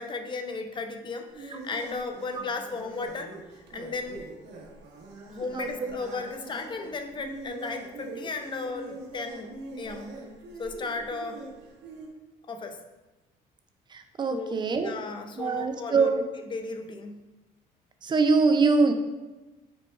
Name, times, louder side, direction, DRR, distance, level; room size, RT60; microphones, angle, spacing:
voice 1, 0.0-3.3 3.7-4.2 5.3-10.2 10.6-11.5 12.5-12.8 14.3-16.1 16.5-17.3, left 3 dB, 30° left, 7 dB, 0.4 m, -35 dB
sound 1, 1.3-12.1, right 3 dB, 85° right, 0.8 m, -44 dB
voice 2, 5.5-6.0 13.9-14.9 15.4-16.2 18.0-18.9, right 4 dB, 25° right, 6 dB, 0.4 m, -23 dB
5.2 x 2.2 x 4.4 m, 1.1 s
cardioid pair, 110°, 17 cm